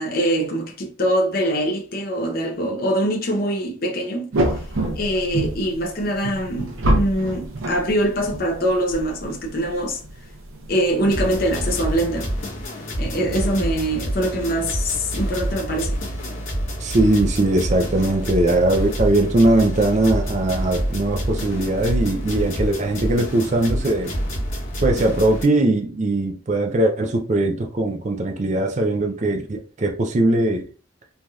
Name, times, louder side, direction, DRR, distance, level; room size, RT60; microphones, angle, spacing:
voice 1, 0.0-4.3 5.0-10.0 10.7-12.3 13.0-16.0, right 1 dB, 45° left, 0.6 m, -23 dB
sound 1, 4.3-11.7, right 1 dB, 80° right, 0.7 m, -27 dB
sound 2, 11.1-25.4, equal, 75° left, 1.1 m, -27 dB
voice 2, 16.8-24.1 24.8-30.6, right 2 dB, 35° right, 0.4 m, -20 dB
3.2 x 2.7 x 2.3 m
head